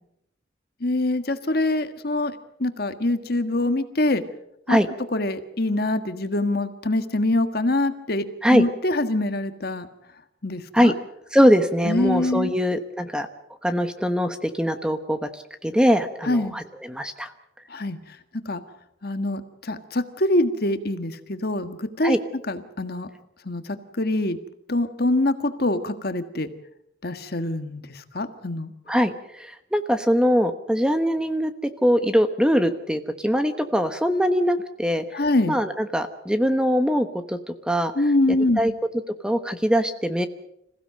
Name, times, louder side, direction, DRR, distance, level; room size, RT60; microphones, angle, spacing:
voice 1, 0.8-2.3 2.6-4.2 4.7-4.8 5.1-9.9 10.4-10.9 11.8-12.5 16.2-16.5 17.7-18.0 18.4-18.6 19.0-22.2 22.5-23.1 23.4-24.4 24.7-26.5 27.0-28.7 35.1-35.6 37.9-38.6, left 2 dB, 55° left, 9 dB, 1.6 m, -24 dB
voice 2, 11.3-13.3 13.6-17.3 22.0-22.2 28.9-35.2 35.5-37.9 38.6-38.7 39.2-40.3, equal, 5° right, 9 dB, 1.1 m, -22 dB
27.0 x 16.0 x 7.7 m, 0.78 s
head